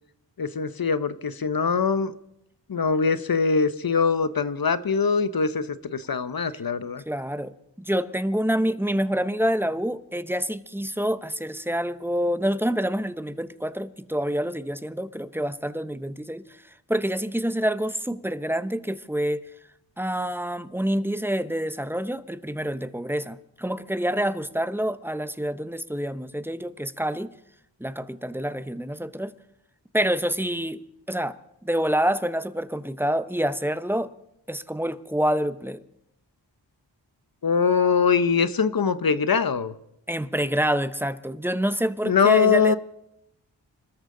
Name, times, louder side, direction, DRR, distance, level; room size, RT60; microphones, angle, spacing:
voice 1, 0.4-2.1 2.7-7.0 37.4-39.7 42.0-42.8, left 5 dB, 50° left, 0.9 m, -22 dB
voice 2, 7.1-16.4 16.9-19.4 20.0-27.3 27.8-29.3 29.9-30.8 31.1-31.3 31.6-34.1 34.5-35.8 40.1-42.7, equal, 5° right, 0.8 m, -27 dB
26.5 x 13.5 x 3.8 m
cardioid pair, 55°, 45 cm